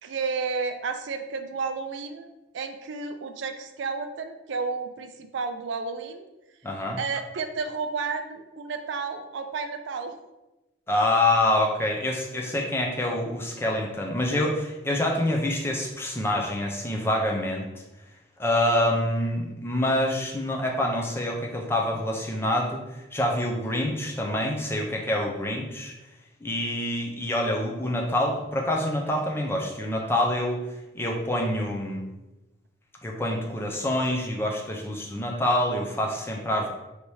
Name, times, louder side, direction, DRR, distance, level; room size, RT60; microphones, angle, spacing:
voice 1, 0.0-2.3 2.5-6.3 7.0-10.2, right 4 dB, 70° right, 8 dB, 0.4 m, -32 dB
voice 2, 6.6-7.0 10.9-17.8 18.4-22.8 23.1-25.9 26.4-30.6 30.9-32.1 33.0-36.7, left 1 dB, 10° left, 0 dB, 0.5 m, -26 dB
3.3 x 2.8 x 4.5 m, 1.0 s
head